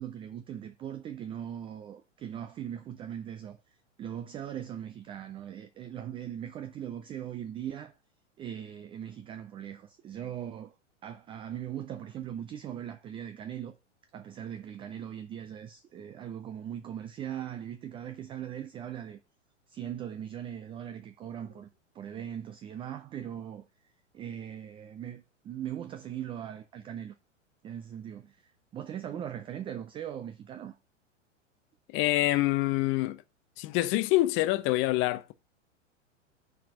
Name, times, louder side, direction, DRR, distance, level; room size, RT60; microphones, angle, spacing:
voice 1, 0.0-3.6 4.0-8.0 8.4-10.7 11.0-13.8 14.1-19.2 19.7-21.7 21.9-23.7 24.1-27.1 27.6-30.8, right 10 dB, 15° right, 0.4 m, -40 dB
voice 2, 31.9-33.2 33.6-35.3, left 17 dB, 35° left, 0.7 m, -26 dB
5.8 x 4.8 x 6.4 m
hypercardioid pair, 100°, 38 cm